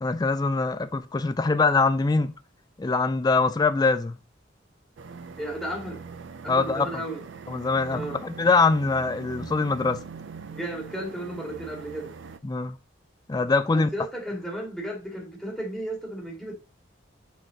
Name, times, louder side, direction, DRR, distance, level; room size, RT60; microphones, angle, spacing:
voice 1, 0.0-2.3 2.8-4.2 6.5-7.0 7.5-10.0 12.4-12.8 13.3-13.9, left 3 dB, 20° left, 0.3 m, -23 dB
sound 1, 5.0-12.4, right 5 dB, 70° right, 0.5 m, -42 dB
voice 2, 5.4-6.0 6.4-7.2 7.9-8.2 10.5-12.1 13.7-16.5, right 1 dB, 5° left, 2.1 m, -34 dB
6.4 x 4.1 x 4.0 m
head